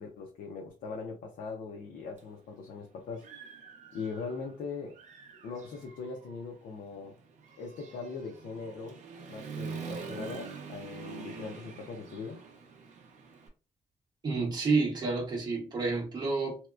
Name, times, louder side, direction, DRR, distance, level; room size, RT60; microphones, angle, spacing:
voice 1, 0.0-3.3 3.9-5.0 5.4-7.1 7.6-9.0 9.3-12.4, left 4 dB, 70° left, 1 dB, 0.5 m, -40 dB
Human voice / Motorcycle, 2.2-2.3 2.8-4.5 4.9-13.5, right 5 dB, 55° right, 0.5 m, -45 dB
voice 2, 14.2-16.6, right 3 dB, 30° right, -2 dB, 0.9 m, -29 dB
2.8 x 2.1 x 2.3 m, 0.35 s
wide cardioid pair, 175°, 14 cm